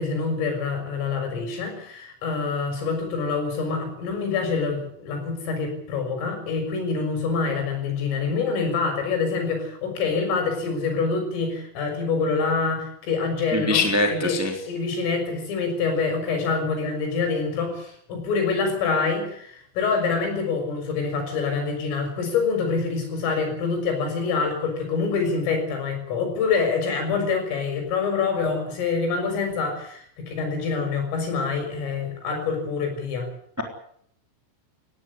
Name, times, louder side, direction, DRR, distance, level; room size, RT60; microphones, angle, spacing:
voice 1, 0.0-14.4 14.7-33.3, left 4 dB, 90° left, 5 dB, 9.0 m, -26 dB
voice 2, 13.5-14.5, left 2 dB, 5° right, 3 dB, 2.3 m, -22 dB
20.0 x 16.5 x 9.8 m, 0.65 s
omnidirectional pair, 5.6 m